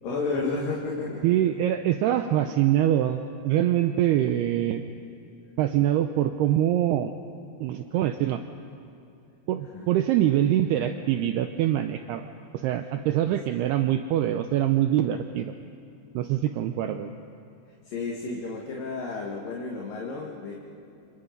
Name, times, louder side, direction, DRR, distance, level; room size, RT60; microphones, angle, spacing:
voice 1, 0.0-1.3 4.1-4.2 9.7-9.9 13.2-13.3 17.8-20.5, left 3 dB, 55° left, -2 dB, 3.2 m, -32 dB
voice 2, 1.2-4.8 5.6-7.1 7.6-8.4 9.5-12.3 12.5-15.5 16.1-17.1, right 12 dB, 90° right, 7 dB, 2.3 m, -24 dB
28.0 x 26.5 x 5.3 m, 2.7 s
omnidirectional pair, 5.5 m